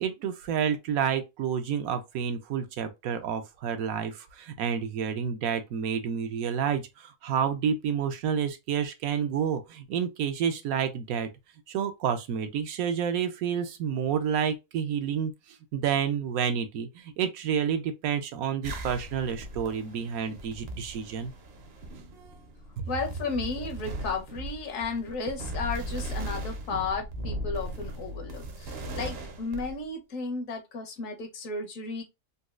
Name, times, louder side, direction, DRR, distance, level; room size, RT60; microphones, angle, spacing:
voice 1, 0.0-11.3 11.7-21.3 22.8-22.9, right 7 dB, 80° right, 1.1 m, -29 dB
sound 1, 18.6-29.8, right 1 dB, 55° right, 0.8 m, -38 dB
voice 2, 22.9-32.0, left 4 dB, 70° left, 1.2 m, -34 dB
4.1 x 2.3 x 2.3 m
omnidirectional pair, 1.5 m